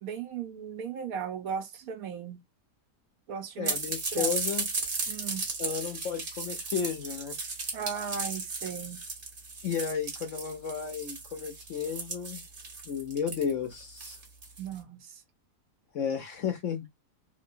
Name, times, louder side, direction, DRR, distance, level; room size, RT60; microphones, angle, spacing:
voice 1, 0.0-2.4 3.3-3.7 4.1-4.3 5.1-5.4 7.7-9.0 14.6-15.0, right 7 dB, 65° right, 1.0 m, -36 dB
voice 2, 3.6-4.7 5.6-7.4 9.6-12.4 12.9-14.2 15.9-16.9, left 7 dB, 65° left, 0.8 m, -33 dB
sound 1, 3.6-14.7, right 3 dB, 40° right, 1.0 m, -35 dB
3.0 x 2.7 x 2.6 m
omnidirectional pair, 1.7 m